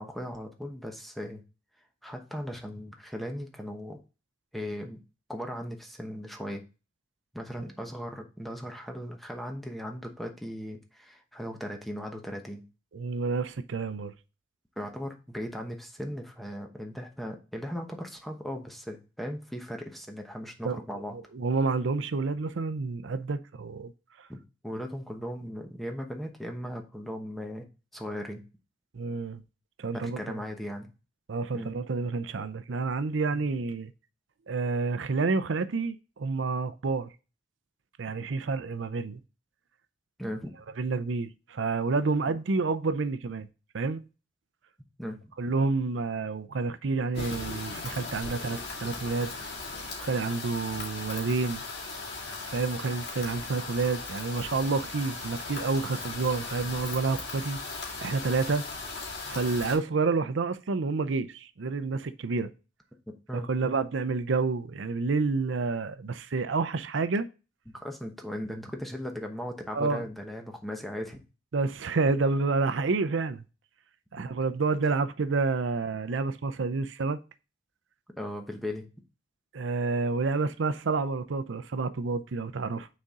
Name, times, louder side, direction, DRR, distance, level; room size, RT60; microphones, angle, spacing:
voice 1, 0.0-1.4 2.0-4.0 4.5-5.0 5.3-6.6 7.3-12.6 14.8-21.1 24.3-24.4 24.6-27.7 27.9-28.4 29.9-30.9 31.5-31.7 33.3-33.5 40.2-40.5 45.0-45.2 63.1-63.5 67.7-71.2 74.2-74.3 78.2-78.8, equal, ahead, 0.9 m, -37 dB
voice 2, 12.9-14.1 20.6-20.8 21.1-23.9 24.2-24.3 28.9-29.4 29.8-30.4 31.3-33.9 34.5-37.1 38.0-39.2 40.8-43.5 43.7-44.0 45.4-49.3 50.0-51.6 52.5-57.6 58.0-58.6 59.3-62.5 63.5-67.3 69.7-70.0 71.5-73.4 74.1-77.2 79.5-82.9, right 4 dB, 85° right, 0.6 m, -29 dB
sound 1, 47.1-59.8, left 3 dB, 55° left, 2.5 m, -38 dB
6.5 x 4.3 x 3.6 m
head